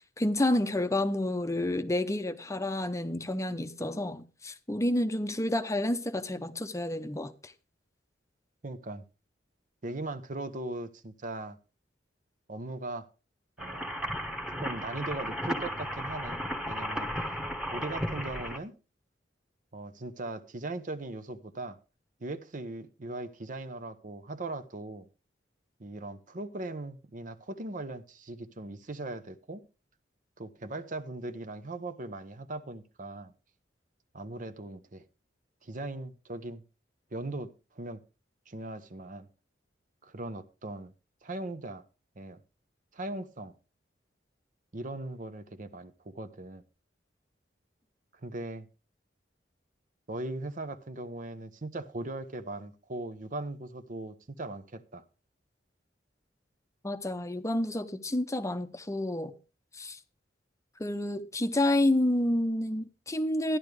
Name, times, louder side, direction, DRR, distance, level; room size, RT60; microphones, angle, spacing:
voice 1, 0.2-7.5 56.8-59.3 59.7-60.0 60.8-63.6, left 1 dB, 15° left, 0.7 m, -29 dB
voice 2, 8.6-9.0 9.8-11.6 12.5-13.1 13.6-13.9 14.5-16.4 16.7-17.3 17.7-18.7 19.7-21.8 22.2-25.1 25.8-29.6 30.4-33.3 34.1-35.0 35.6-36.6 37.1-38.0 38.5-39.3 40.0-40.9 41.2-41.8 42.2-42.4 42.9-43.6 44.7-46.6 48.2-48.7 50.1-55.0, right 2 dB, 45° right, 0.8 m, -39 dB
Nightmare Mechanical Ambience, 13.6-18.6, equal, 5° right, 1.2 m, -34 dB
14.0 x 10.5 x 3.3 m
head